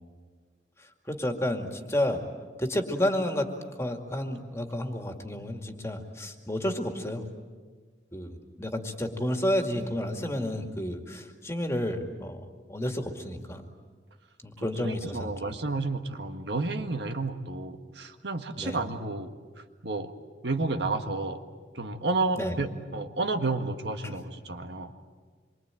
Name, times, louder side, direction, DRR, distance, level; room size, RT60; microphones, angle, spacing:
voice 1, 0.8-2.2 2.6-3.5 3.8-7.2 8.1-12.4 12.7-13.6 14.4-15.3 18.6-18.8 22.4-22.6 24.0-24.2, left 1 dB, 15° left, 4 dB, 2.3 m, -31 dB
voice 2, 14.6-19.4 19.8-20.1 20.4-21.4 21.8-24.9, right 3 dB, 75° right, 6 dB, 1.7 m, -31 dB
27.0 x 24.0 x 9.1 m, 1.5 s
head